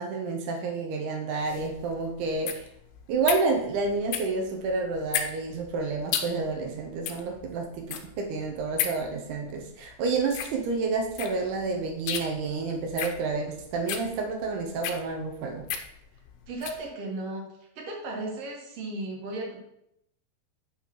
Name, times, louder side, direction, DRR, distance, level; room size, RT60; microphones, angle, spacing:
voice 1, 0.0-2.7 3.1-15.6, right 4 dB, 90° right, 2 dB, 1.7 m, -29 dB
sound 1, 1.4-16.9, left 9 dB, 85° left, 2.6 m, -35 dB
voice 2, 16.5-17.4 17.8-19.6, right 2 dB, 60° right, 0 dB, 1.8 m, -35 dB
8.8 x 5.6 x 3.0 m, 0.80 s
omnidirectional pair, 4.5 m